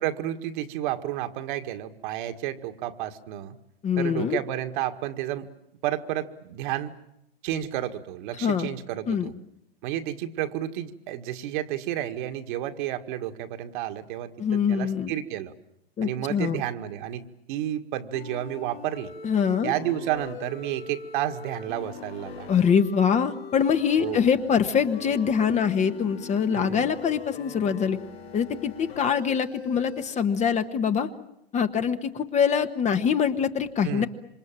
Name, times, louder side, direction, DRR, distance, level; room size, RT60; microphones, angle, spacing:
voice 1, 0.0-3.6 4.0-5.5 5.8-6.9 7.4-9.3 9.8-15.5 16.0-19.1 19.6-22.6 24.0-24.2 26.5-26.9 33.8-34.1, right 12 dB, 50° right, 7 dB, 1.9 m, -31 dB
voice 2, 3.8-4.4 8.4-8.7 9.1-9.3 14.4-15.1 16.0-16.6 19.2-19.7 22.5-28.0 28.3-31.1 31.5-34.1, left 7 dB, 20° left, 9 dB, 1.3 m, -24 dB
sound 1, 18.1-30.0, left 5 dB, 80° left, 4.0 m, -42 dB
27.0 x 25.5 x 7.6 m, 0.81 s
hypercardioid pair, 115°, 31 cm